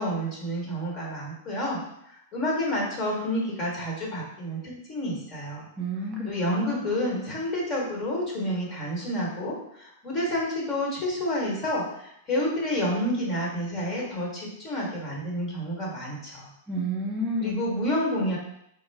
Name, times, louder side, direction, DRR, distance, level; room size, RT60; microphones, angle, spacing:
voice 1, 0.0-1.8 2.1-5.7 6.2-16.5 17.4-18.4, left 1 dB, 30° left, -3 dB, 1.3 m, -29 dB
voice 2, 5.8-6.9 16.7-17.6, right 1 dB, 20° right, -3 dB, 0.7 m, -30 dB
3.7 x 2.1 x 3.4 m, 0.77 s
hypercardioid pair, 130°, 0 cm